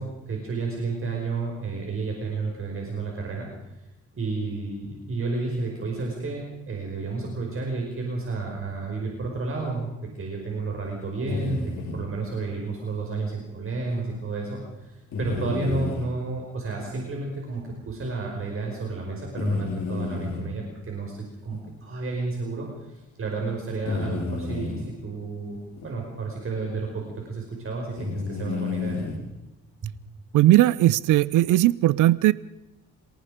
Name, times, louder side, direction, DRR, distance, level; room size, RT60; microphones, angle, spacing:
voice 1, 0.0-3.5 4.1-29.0 29.8-29.9, right 3 dB, 45° right, 0 dB, 5.4 m, -31 dB
sound 1, 11.3-12.0 13.9-14.0 15.1-16.1 16.8-16.9 17.5-17.6 19.4-20.5 21.5-21.6 22.1-22.2 23.9-24.8 25.8-25.9 26.8-27.0 28.0-29.2, left 4 dB, 65° left, 5.1 m, -30 dB
voice 2, 30.3-32.3, right 15 dB, 85° right, 20 dB, 0.6 m, -18 dB
27.5 x 18.5 x 5.1 m, 1.0 s
cardioid pair, 90°, 30 cm